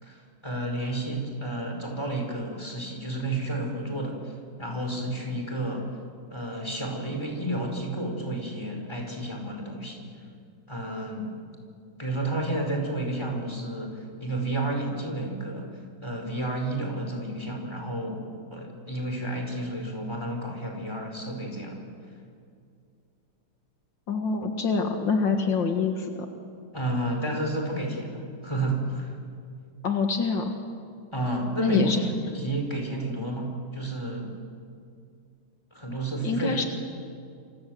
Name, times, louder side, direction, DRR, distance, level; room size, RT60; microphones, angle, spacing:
voice 1, 0.0-4.3 4.6-5.9 6.3-10.0 10.7-11.3 12.0-15.7 16.0-21.9 26.7-29.2 31.1-32.0 32.3-34.3 35.7-36.6, right 1 dB, 15° left, 2 dB, 5.0 m, -31 dB
voice 2, 24.1-26.3 29.8-30.6 31.6-32.0 36.2-36.6, left 4 dB, 80° left, 4 dB, 2.5 m, -25 dB
27.5 x 26.0 x 7.9 m, 2.3 s
omnidirectional pair, 2.0 m